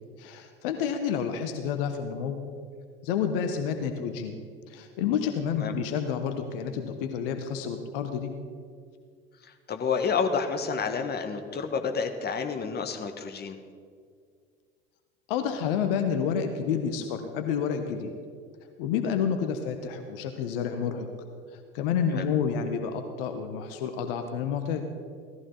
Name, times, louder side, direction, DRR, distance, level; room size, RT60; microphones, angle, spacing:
voice 1, 0.2-2.4 3.0-4.4 4.7-8.3 15.3-18.1 18.8-21.1 21.7-24.8, left 7 dB, 70° left, 7 dB, 1.2 m, -29 dB
voice 2, 9.4-13.6 22.1-22.3, left 5 dB, 35° left, 6 dB, 1.5 m, -29 dB
17.5 x 14.0 x 4.0 m, 2.1 s
hypercardioid pair, 65°, 30 cm